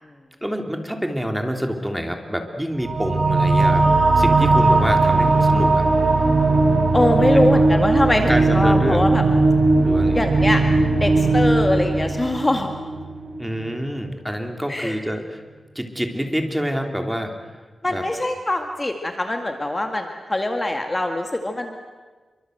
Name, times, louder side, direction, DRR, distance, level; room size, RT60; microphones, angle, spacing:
voice 1, 0.4-5.8 7.2-7.7 8.3-9.0 9.8-10.2 13.4-15.4 15.7-17.6 17.9-18.0, equal, 5° right, 4 dB, 3.2 m, -27 dB
sound 1, 2.8-13.7, right 3 dB, 70° right, 4.7 m, -18 dB
voice 2, 6.9-9.2 10.1-10.6 11.0-12.7 14.7-15.0 17.8-21.8, left 1 dB, 20° left, 4 dB, 2.0 m, -22 dB
28.0 x 24.0 x 7.9 m, 1.3 s
wide cardioid pair, 95°, 0 cm